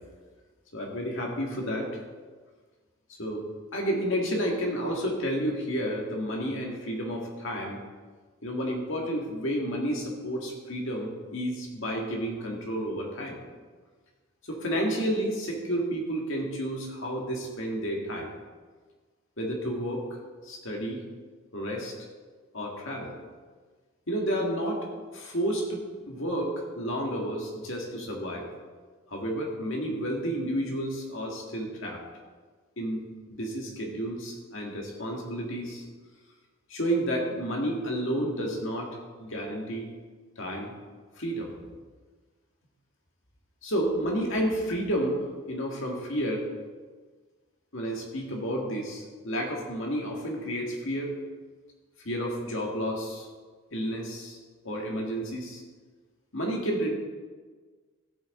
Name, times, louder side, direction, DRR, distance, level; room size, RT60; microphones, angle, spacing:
voice 1, 0.7-2.0 3.2-3.4 3.7-7.8 8.4-13.4 14.5-18.3 19.4-20.2 20.4-21.0 21.5-21.9 22.5-23.1 24.1-24.9 25.1-28.5 29.1-32.0 32.8-33.0 33.3-35.8 36.7-39.9 40.4-40.7 41.2-41.5 43.6-46.5 47.7-51.1 52.0-53.3 53.7-54.4 54.6-55.6 56.3-56.9, equal, 55° left, 0 dB, 2.1 m, -31 dB
14.0 x 8.4 x 3.8 m, 1.4 s
head